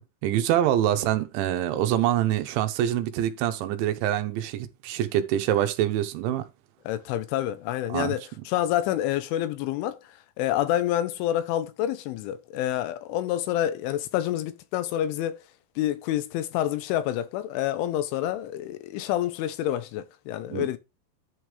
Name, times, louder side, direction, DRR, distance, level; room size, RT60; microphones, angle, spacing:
voice 1, 0.0-6.5 7.9-8.1 20.5-20.7, right 12 dB, 80° right, 3.1 m, -25 dB
voice 2, 6.9-10.0 10.4-15.4 15.8-20.8, left 12 dB, 85° left, 3.4 m, -28 dB
11.5 x 6.3 x 3.4 m
omnidirectional pair, 5.4 m